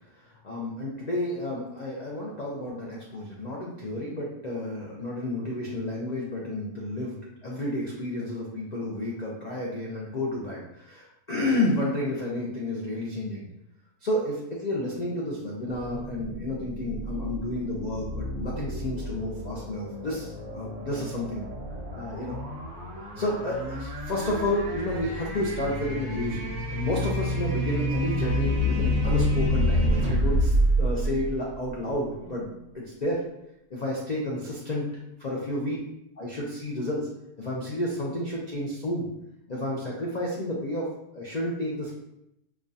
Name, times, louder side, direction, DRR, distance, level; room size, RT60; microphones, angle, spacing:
voice 1, 0.2-13.4 14.0-21.4 21.9-22.4 23.2-32.5 32.7-33.2 33.7-34.9 35.2-35.8 36.2-37.1 37.4-39.1 39.5-40.9 41.1-41.9, left 1 dB, 75° left, -4 dB, 0.3 m, -31 dB
sound 1, 15.7-31.9, equal, 55° right, 1.3 m, -29 dB
5.1 x 2.4 x 2.6 m, 0.82 s
omnidirectional pair, 1.6 m